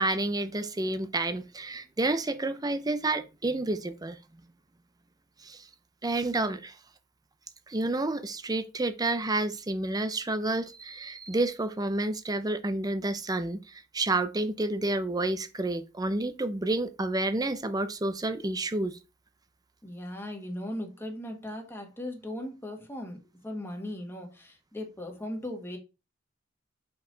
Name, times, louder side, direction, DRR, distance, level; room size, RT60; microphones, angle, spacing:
voice 1, 0.0-4.2 5.5-5.6 6.0-6.7 7.7-13.6 13.9-18.9, right 2 dB, 20° right, 0.6 m, -29 dB
voice 2, 19.8-23.2 23.4-25.8, left 1 dB, 10° left, 1.5 m, -38 dB
5.4 x 4.7 x 3.9 m
head